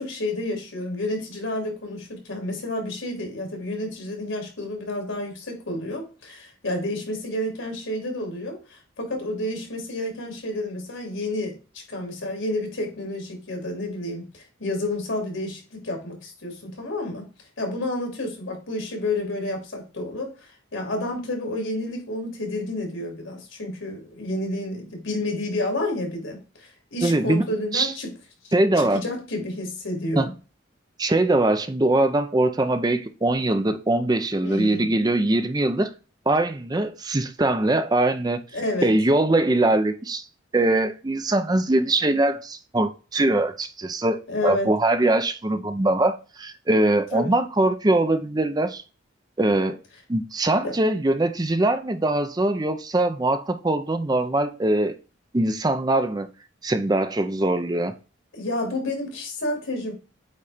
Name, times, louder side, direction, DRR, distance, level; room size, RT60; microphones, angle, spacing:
voice 1, 0.0-17.3 17.6-28.1 28.4-30.3 34.4-34.9 38.5-38.9 44.3-44.7 47.1-47.3 50.6-50.7 58.3-59.9, left 1 dB, 80° left, 2.9 m, -30 dB
voice 2, 27.0-27.4 27.7-27.9 28.5-29.0 30.2-30.3 31.0-35.9 36.3-38.4 38.8-40.2 40.5-48.8 49.4-49.8 50.1-54.9 55.3-56.3 56.6-57.9, right 2 dB, 20° right, 0.5 m, -22 dB
8.4 x 3.2 x 4.2 m
head